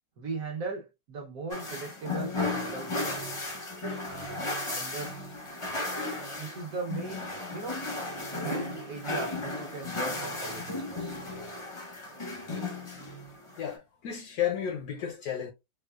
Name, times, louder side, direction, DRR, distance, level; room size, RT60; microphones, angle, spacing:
voice 1, 0.2-3.4 4.0-5.3 6.3-7.8 8.4-11.2, right 3 dB, 60° right, 1.2 m, -38 dB
sound 1, 1.5-13.7, left 2 dB, 30° left, 0.5 m, -35 dB
voice 2, 13.6-15.5, left 9 dB, 70° left, 0.9 m, -32 dB
4.3 x 2.3 x 2.3 m
omnidirectional pair, 1.9 m